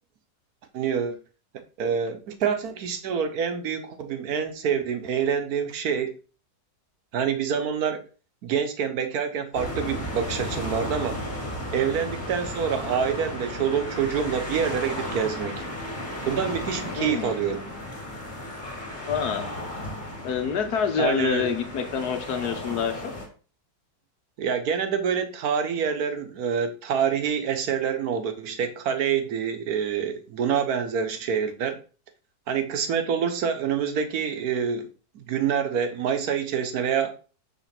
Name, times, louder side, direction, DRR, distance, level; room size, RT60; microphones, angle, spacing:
voice 1, 0.7-1.2 1.8-6.2 7.1-8.0 8.4-11.2 11.7-15.6 16.2-17.7 21.0-21.5 24.4-31.8 32.5-34.9 35.1-37.1, right 7 dB, 65° right, 8 dB, 1.3 m, -26 dB
sound 1, 9.5-23.3, left 1 dB, 25° left, 1.9 m, -34 dB
voice 2, 16.9-17.4 19.1-19.5 20.2-23.1, left 7 dB, 65° left, 7 dB, 1.4 m, -27 dB
5.9 x 3.5 x 5.8 m, 0.37 s
omnidirectional pair, 1.8 m